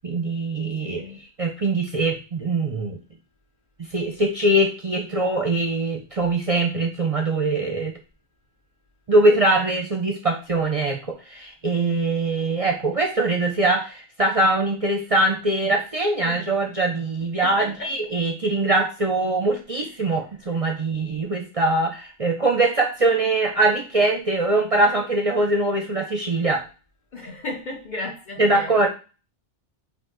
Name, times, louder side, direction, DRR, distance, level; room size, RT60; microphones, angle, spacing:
voice 1, 0.0-1.0 1.4-3.0 3.8-7.9 9.1-26.6 28.4-28.9, right 2 dB, 40° right, 0.5 m, -22 dB
voice 2, 0.8-1.2 16.3-16.4 17.4-17.9 20.0-20.1 27.1-28.7, left 2 dB, 50° left, 0.6 m, -34 dB
5.1 x 2.7 x 3.8 m
omnidirectional pair, 1.2 m